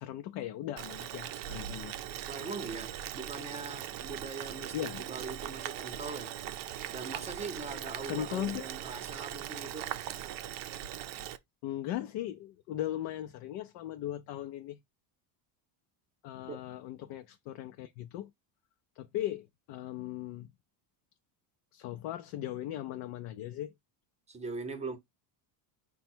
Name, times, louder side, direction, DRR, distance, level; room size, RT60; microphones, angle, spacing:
voice 1, 0.0-2.0 4.7-5.0 8.1-8.6 11.6-14.8 16.2-18.3 19.0-20.5 21.7-23.7, left 12 dB, 60° left, 0.6 m, -38 dB
Boiling, 0.8-11.4, right 11 dB, 50° right, 0.5 m, -40 dB
voice 2, 2.3-6.3 6.9-9.9 16.5-16.6 24.3-25.0, right 4 dB, 15° right, 0.7 m, -41 dB
5.1 x 2.3 x 4.3 m
cardioid pair, 155°, 47 cm